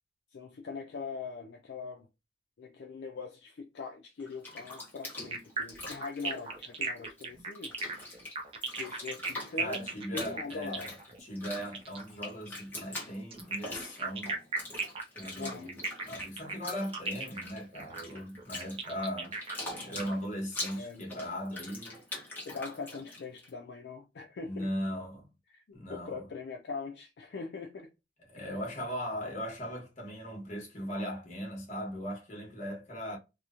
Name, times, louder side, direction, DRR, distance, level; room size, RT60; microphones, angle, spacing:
voice 1, 0.3-2.1 2.6-7.8 8.8-10.9 15.3-15.7 20.7-21.0 22.5-24.7 25.5-27.9 28.4-28.5, left 4 dB, 60° left, 0.3 m, -42 dB
Bathtub (filling or washing), 4.2-7.2 7.5-23.5, left 1 dB, 10° left, 0.7 m, -43 dB
sound 1, 5.3-12.1 13.3-20.0, right 4 dB, 30° right, 0.4 m, -37 dB
voice 2, 9.6-14.3 15.1-19.3 19.8-22.0 24.4-25.3 25.7-26.2 28.3-33.2, equal, 40° left, 1.0 m, -38 dB
2.9 x 2.0 x 2.4 m
head